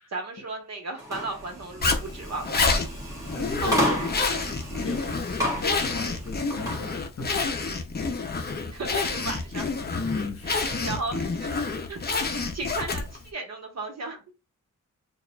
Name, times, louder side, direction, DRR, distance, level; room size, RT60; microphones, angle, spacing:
voice 1, 0.1-2.7 3.6-4.9 8.7-9.7 10.4-11.6 11.9-12.0 12.5-14.3, right 3 dB, 55° right, 1.1 m, -35 dB
sound 1, 1.0-6.8, equal, 10° right, 1.1 m, -32 dB
Zipper (clothing), 1.8-13.3, left 4 dB, 30° left, 0.6 m, -28 dB
voice 2, 3.3-4.0 4.8-5.1 5.4-7.5 10.0-11.3, left 3 dB, 45° left, 1.0 m, -35 dB
6.3 x 2.4 x 2.3 m
wide cardioid pair, 175°, 32 cm